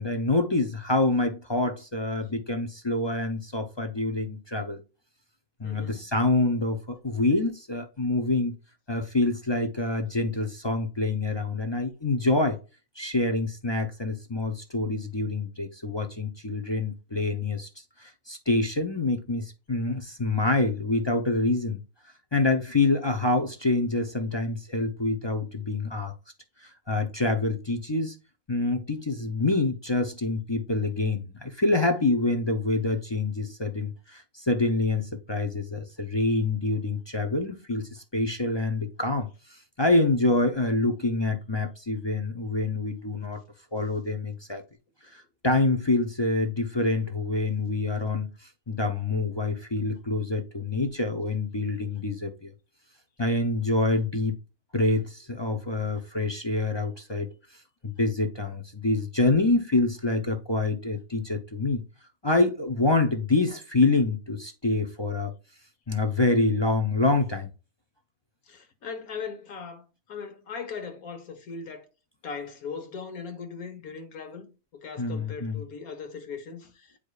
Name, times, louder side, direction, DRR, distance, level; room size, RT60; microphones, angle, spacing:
voice 1, 0.0-4.8 5.6-8.5 8.9-12.6 13.0-17.7 18.0-21.8 22.3-26.1 26.6-28.2 28.5-43.4 43.7-44.6 45.1-52.5 53.2-54.3 54.7-57.3 57.8-61.8 62.2-65.3 65.9-67.5 75.0-75.6, left 2 dB, 35° left, 0.4 m, -26 dB
voice 2, 5.6-6.1 68.5-71.8 72.2-74.5 74.7-77.0, left 5 dB, 75° left, 1.7 m, -39 dB
8.4 x 4.9 x 2.4 m
omnidirectional pair, 1.5 m